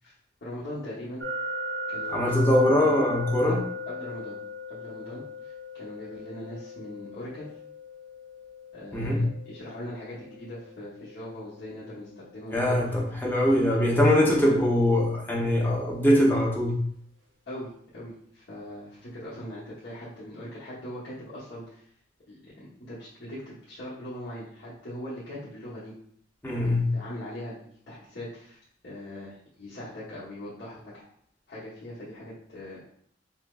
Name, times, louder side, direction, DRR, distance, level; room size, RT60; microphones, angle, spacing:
voice 1, 0.4-1.2 1.9-3.0 3.4-3.5 3.9-4.4 4.7-7.5 8.7-12.8 13.4-13.5 13.8-14.6 17.5-21.8 22.3-25.9 26.4-27.6 27.9-31.0 31.5-32.8, left 1 dB, 65° left, -11 dB, 1.1 m, -41 dB
sound 1, 1.2-14.1, equal, 70° right, 0.7 m, -39 dB
voice 2, 2.1-3.6 8.9-9.2 12.5-16.8 26.4-26.9, left 1 dB, 10° left, -3 dB, 0.8 m, -22 dB
5.7 x 2.1 x 2.4 m, 0.65 s
head